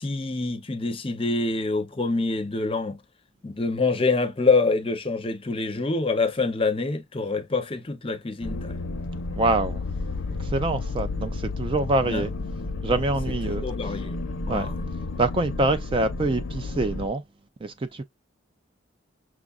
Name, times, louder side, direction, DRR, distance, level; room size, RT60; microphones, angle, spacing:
voice 1, 0.0-3.0 3.4-8.8 12.1-12.2 13.5-14.2 14.5-14.8, left 3 dB, 25° left, 0.6 m, -26 dB
sound 1, 8.4-17.1, left 3 dB, 85° left, 0.7 m, -32 dB
voice 2, 9.4-9.8 10.3-12.3 12.8-13.9 14.5-14.7 15.2-17.2 17.6-18.0, right 2 dB, 25° right, 0.3 m, -25 dB
6.0 x 2.4 x 2.3 m
head